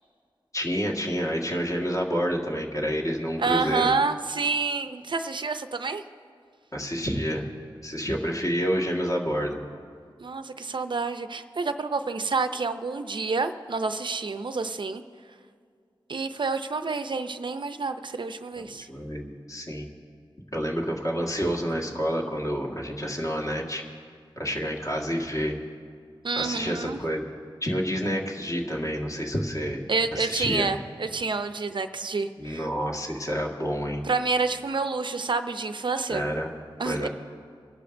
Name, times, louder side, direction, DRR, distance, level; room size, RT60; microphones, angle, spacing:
voice 1, 0.5-3.9 6.7-7.4 7.8-9.6 18.6-19.9 20.5-23.8 24.4-25.6 26.4-27.2 27.6-29.8 30.1-30.7 32.4-34.0 36.1-36.5 36.8-37.1, equal, 35° left, -1 dB, 1.7 m, -28 dB
voice 2, 3.4-6.0 10.2-15.0 16.1-18.9 26.2-27.0 29.9-32.6 34.1-36.2 36.8-37.1, right 4 dB, 60° right, 9 dB, 0.5 m, -28 dB
28.0 x 11.5 x 2.6 m, 2.2 s
wide cardioid pair, 95°, 9 cm